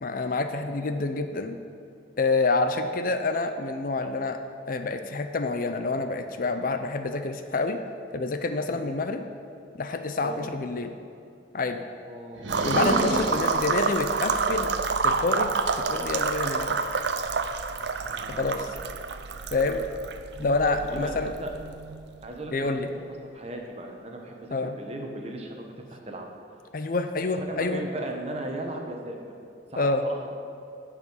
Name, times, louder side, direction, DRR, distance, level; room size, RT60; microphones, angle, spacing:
voice 1, 0.0-1.6 2.2-4.4 4.7-7.8 8.1-9.2 9.8-11.0 11.5-11.8 12.6-14.8 15.0-15.5 15.8-16.8 18.4-18.7 19.5-19.9 20.4-21.3 22.5-22.9 24.5-24.7 26.7-27.8 29.8-30.0, left 3 dB, 45° left, 8 dB, 0.5 m, -27 dB
voice 2, 12.1-12.5 12.9-13.4 18.1-18.6 20.8-21.5 22.2-22.9 23.3-25.6 25.9-26.3 27.4-29.2 29.7-30.3, right 1 dB, 30° right, 2 dB, 1.0 m, -37 dB
sound 1, 12.3-14.0, right 1 dB, 80° right, 1.2 m, -30 dB
sound 2, 12.5-22.3, right 4 dB, 60° right, 0.5 m, -28 dB
10.0 x 4.9 x 7.1 m, 2.4 s
head